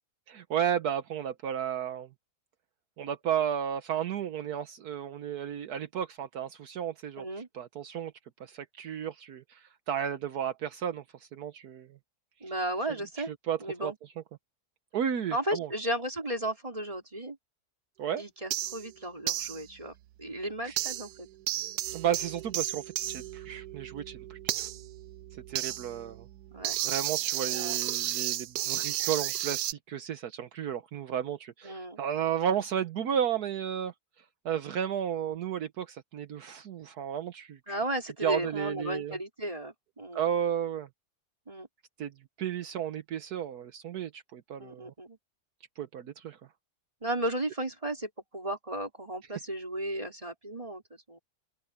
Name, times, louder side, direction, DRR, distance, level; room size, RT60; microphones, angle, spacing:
voice 1, 0.3-2.1 3.0-7.2 7.5-8.1 8.4-12.0 13.2-13.9 14.9-15.7 18.0-18.2 20.6-20.8 21.6-24.7 25.3-26.3 26.8-33.9 34.4-37.8 38.2-39.2 40.1-40.9 42.0-42.1 42.4-44.9 45.8-46.4, right 9 dB, 75° right, 1.4 m, -33 dB
voice 2, 7.2-7.5 12.4-13.3 13.6-14.0 15.3-17.4 18.2-21.3 26.5-26.8 27.5-27.8 31.6-32.0 37.7-40.3 41.5-41.7 44.6-45.2 47.0-51.2, right 1 dB, 20° right, 4.8 m, -35 dB
sound 1, 18.5-18.9 19.3-19.6 20.8-21.2 21.5-29.7, right 14 dB, 90° right, 1.2 m, -33 dB
open air
omnidirectional pair, 1.7 m